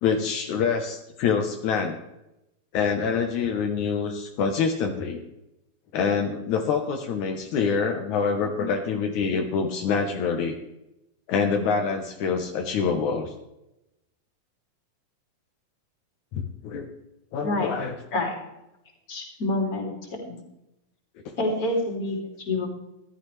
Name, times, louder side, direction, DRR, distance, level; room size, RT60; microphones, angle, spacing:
voice 1, 0.0-2.0 2.7-5.2 5.9-10.6 11.3-13.3 16.3-16.9 17.3-17.9, left 5 dB, 75° left, 3 dB, 2.5 m, -26 dB
voice 2, 17.4-17.7 18.1-18.4 19.1-19.9 20.2-20.4 21.4-22.7, left 2 dB, 30° left, 1 dB, 3.2 m, -27 dB
15.5 x 12.0 x 3.3 m, 0.88 s
omnidirectional pair, 3.4 m